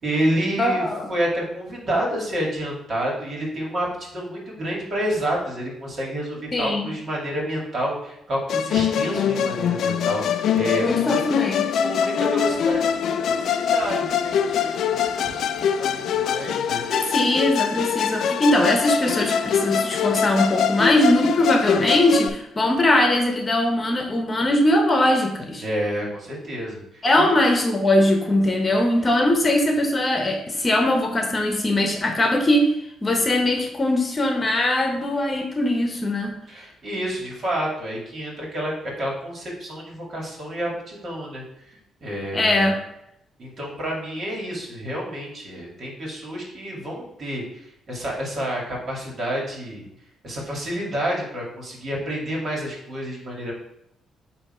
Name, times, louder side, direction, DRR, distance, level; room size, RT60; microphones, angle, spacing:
voice 1, 0.0-11.2 11.8-17.1 25.6-27.4 36.5-41.4 42.0-42.7 43.4-47.4 47.9-49.9 50.2-53.5, equal, 50° right, -2 dB, 2.4 m, -29 dB
voice 2, 0.6-1.1 6.5-6.9 10.8-11.7 16.9-25.6 27.0-32.7 33.0-36.3 42.3-42.8, left 1 dB, 30° left, 2 dB, 1.1 m, -21 dB
Musical instrument, 8.5-22.3, left 8 dB, 70° left, 0.4 m, -23 dB
8.3 x 3.0 x 4.4 m, 0.79 s
cardioid pair, 90°, 0 cm